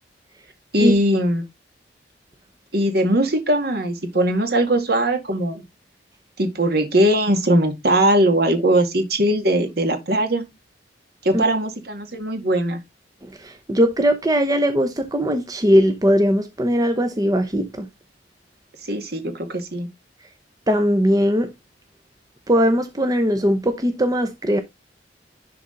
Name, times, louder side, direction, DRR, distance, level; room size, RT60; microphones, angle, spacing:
voice 1, 0.7-1.4 2.7-5.6 6.4-10.4 11.2-12.8 18.8-19.9, right 1 dB, 60° right, 2.0 m, -20 dB
voice 2, 13.4-17.9 20.7-21.5 22.5-24.6, equal, 20° right, 0.8 m, -19 dB
11.0 x 3.9 x 3.9 m
head